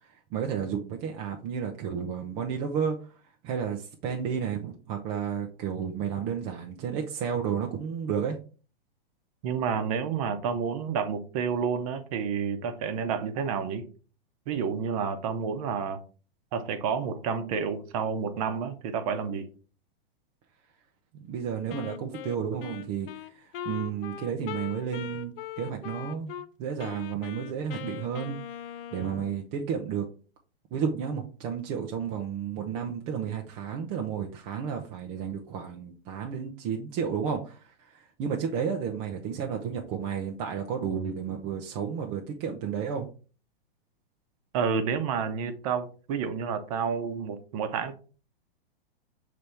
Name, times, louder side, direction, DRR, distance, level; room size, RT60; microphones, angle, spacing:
voice 1, 0.0-3.2 3.4-8.4 21.1-26.3 26.6-28.4 28.9-30.1 30.7-43.1, right 7 dB, 20° right, 0.4 m, -32 dB
voice 2, 9.4-13.9 14.5-16.0 16.5-19.5 44.5-48.0, right 6 dB, 35° right, 0.8 m, -30 dB
Wind instrument woodwind instrument, 21.7-26.5 26.8-29.4, left 11 dB, 65° left, 0.5 m, -40 dB
6.6 x 3.4 x 4.3 m
hypercardioid pair, 160°, 30 cm